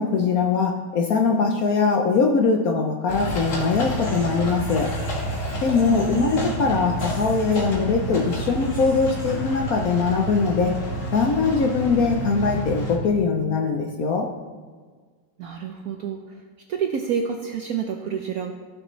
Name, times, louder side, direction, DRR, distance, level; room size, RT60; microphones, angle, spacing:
voice 1, 0.0-4.9 5.6-10.7 11.1-14.3, left 4 dB, 65° left, 1 dB, 0.9 m, -22 dB
sound 1, 3.1-13.0, right 1 dB, 45° left, 1.6 m, -29 dB
sound 2, 4.0-6.6 6.9-9.5, right 1 dB, 20° right, 3.2 m, -47 dB
voice 2, 5.9-6.3 15.4-16.2 16.7-18.5, right 7 dB, 70° right, 4 dB, 0.8 m, -28 dB
14.5 x 6.6 x 3.1 m, 1.5 s
omnidirectional pair, 2.1 m